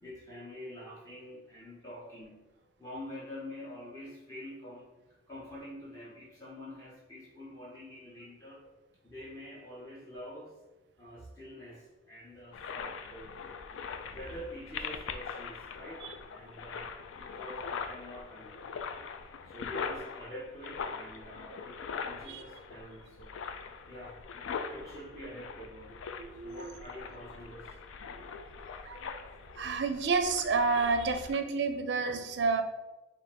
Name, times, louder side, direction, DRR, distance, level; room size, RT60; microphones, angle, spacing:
voice 1, 0.0-2.4 2.8-4.9 5.3-8.6 9.0-10.6 11.0-13.4 14.1-18.8 19.5-23.4 23.9-24.2 24.7-25.9 26.4-27.8, left 1 dB, 15° left, -7 dB, 0.7 m, -46 dB
sound 1, 12.5-31.4, left 5 dB, 90° left, 0.3 m, -42 dB
voice 2, 26.2-26.8 28.9-29.2 29.6-32.6, right 4 dB, 65° right, 7 dB, 0.4 m, -30 dB
3.8 x 2.5 x 4.2 m, 1.1 s
head